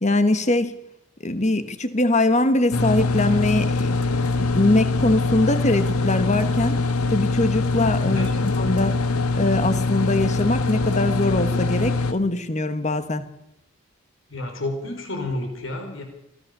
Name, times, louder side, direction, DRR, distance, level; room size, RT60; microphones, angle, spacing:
voice 1, 0.0-0.7 1.2-4.0 4.4-6.8 7.1-9.0 9.3-13.2, left 2 dB, 30° left, 11 dB, 1.4 m, -22 dB
sound 1, 2.7-12.1, left 3 dB, 85° left, 1.5 m, -23 dB
voice 2, 7.9-8.4 14.3-16.0, left 2 dB, 60° left, 4 dB, 5.0 m, -30 dB
23.5 x 16.0 x 6.8 m, 0.85 s
head